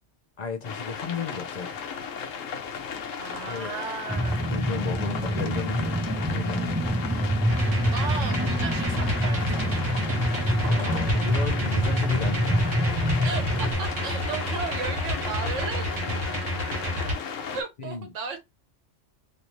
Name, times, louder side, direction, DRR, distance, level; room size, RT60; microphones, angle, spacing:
voice 1, 0.4-1.7 3.4-3.8 4.5-6.8 10.6-12.8 17.8-18.1, left 5 dB, 50° left, 0.5 m, -34 dB
sound 1, 0.6-17.6, left 6 dB, 80° left, 1.1 m, -35 dB
voice 2, 3.2-4.5 7.9-9.7 13.2-15.9 17.5-18.4, right 5 dB, 75° right, 1.3 m, -35 dB
sound 2, 4.1-13.7, equal, 10° right, 0.9 m, -26 dB
sound 3, 7.5-17.1, equal, 50° right, 1.4 m, -30 dB
3.1 x 2.7 x 3.0 m
omnidirectional pair, 1.3 m